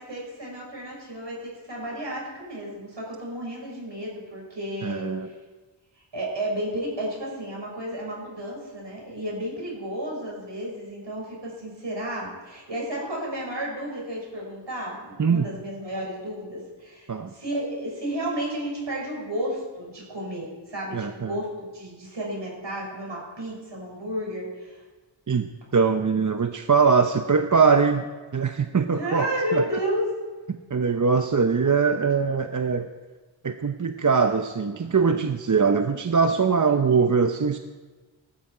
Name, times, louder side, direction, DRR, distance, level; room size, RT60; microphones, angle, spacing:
voice 1, 0.0-5.1 6.1-24.8 28.9-30.1, right 1 dB, 65° right, -3 dB, 6.6 m, -32 dB
voice 2, 4.8-5.3 15.2-15.5 17.1-17.3 20.9-21.4 25.3-28.1 28.3-29.3 29.5-29.8 30.5-32.9 33.4-37.6, right 5 dB, 40° right, 7 dB, 0.7 m, -22 dB
19.0 x 12.5 x 5.0 m, 1.3 s
wide cardioid pair, 65°, 47 cm